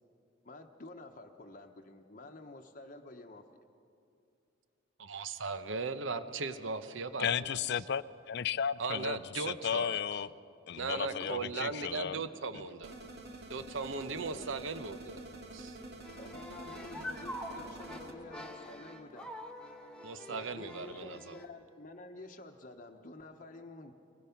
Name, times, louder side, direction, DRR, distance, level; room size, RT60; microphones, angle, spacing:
voice 1, 0.4-3.4 11.0-12.4 14.1-14.6 16.2-19.3 20.3-23.9, left 2 dB, 40° left, 0.9 m, -50 dB
voice 2, 5.0-7.6 8.8-10.2 10.8-12.9 13.5-15.2 15.5-15.8 20.0-21.4, right 4 dB, 75° right, 0.9 m, -38 dB
voice 3, 7.2-9.2 9.5-10.3 10.7-12.2, left 8 dB, 60° left, 0.4 m, -34 dB
sound 1, 12.8-18.1, right 2 dB, 55° right, 2.0 m, -48 dB
sound 2, 16.0-21.5, left 1 dB, 5° left, 1.4 m, -45 dB
23.0 x 20.0 x 5.8 m
head